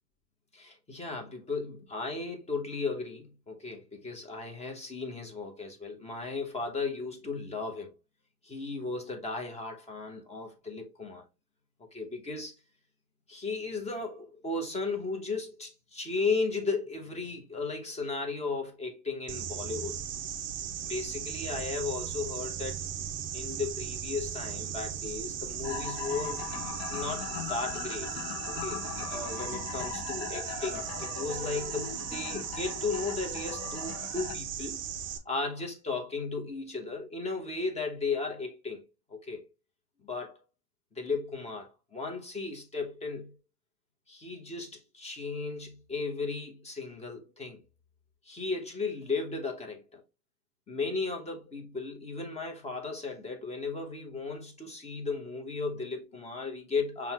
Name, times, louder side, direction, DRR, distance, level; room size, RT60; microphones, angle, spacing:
voice 1, 0.5-7.9 8.4-11.2 11.9-12.6 13.3-20.0 20.8-22.8 23.3-26.4 26.9-28.1 28.5-34.8 35.2-38.8 39.1-39.5 40.0-40.4 40.9-43.4 44.1-47.6 48.2-50.0 50.7-57.1, left 4 dB, 15° left, 1.1 m, -35 dB
sound 1, 19.3-35.2, right 9 dB, 25° right, 0.5 m, -37 dB
sound 2, 25.6-34.4, left 9 dB, 40° left, 0.5 m, -40 dB
5.4 x 2.4 x 2.9 m
hypercardioid pair, 115°, 45 cm